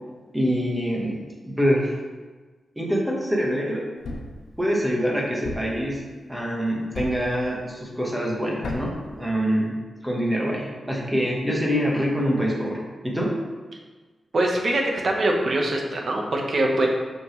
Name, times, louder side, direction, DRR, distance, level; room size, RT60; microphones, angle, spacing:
voice 1, 0.3-1.1 1.5-1.9 2.8-3.9 4.6-6.0 6.3-13.3, equal, 10° right, -3 dB, 1.3 m, -25 dB
Thump thud, 4.0-4.4 5.4-5.8 6.9-7.3 8.6-9.0, left 1 dB, 85° left, 1.0 m, -32 dB
voice 2, 14.3-16.9, right 1 dB, 45° right, 0 dB, 1.1 m, -23 dB
6.1 x 5.9 x 3.2 m, 1.3 s
wide cardioid pair, 135°, 0 cm